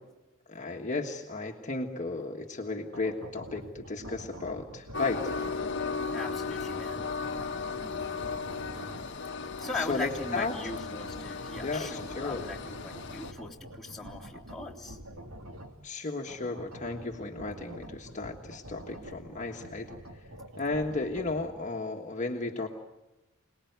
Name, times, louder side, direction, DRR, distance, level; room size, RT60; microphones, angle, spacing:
voice 1, 0.5-5.2 9.9-10.5 11.6-12.4 15.8-19.9 20.6-22.7, left 3 dB, 35° left, 1 dB, 1.6 m, -34 dB
sound 1, 2.9-9.2 9.5-15.8 16.2-21.6, right 1 dB, 85° right, 2.8 m, -46 dB
Train, 4.9-13.3, left 4 dB, 55° left, 1.2 m, -36 dB
voice 2, 6.1-7.0 9.6-15.0, left 3 dB, ahead, -5 dB, 3.5 m, -39 dB
27.0 x 20.0 x 9.4 m, 1.0 s
head